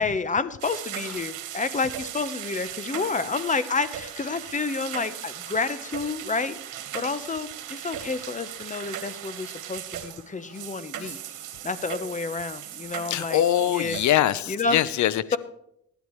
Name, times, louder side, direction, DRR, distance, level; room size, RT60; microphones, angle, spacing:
voice 1, 0.0-6.6 6.9-11.2 11.6-13.4 13.7-14.0 14.5-14.8, left 4 dB, 25° left, 12 dB, 1.0 m, -29 dB
sound 1, 0.6-14.1, right 10 dB, 85° right, 1.4 m, -38 dB
voice 2, 13.1-15.4, left 12 dB, 70° left, 17 dB, 0.7 m, -23 dB
24.0 x 10.5 x 3.2 m, 0.76 s
cardioid pair, 90°, 30 cm